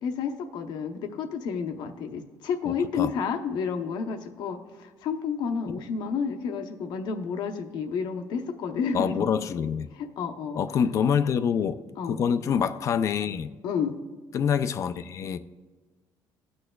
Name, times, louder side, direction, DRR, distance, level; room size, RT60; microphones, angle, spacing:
voice 1, 0.0-9.3 9.9-10.8 12.0-12.2 13.6-14.0, left 6 dB, 75° left, 6 dB, 0.8 m, -30 dB
voice 2, 2.7-3.1 8.9-9.9 10.6-11.8 12.1-13.5 14.3-15.4, left 7 dB, 45° left, 11 dB, 0.4 m, -26 dB
18.5 x 6.4 x 2.3 m, 1.4 s
cardioid pair, 145°, 7 cm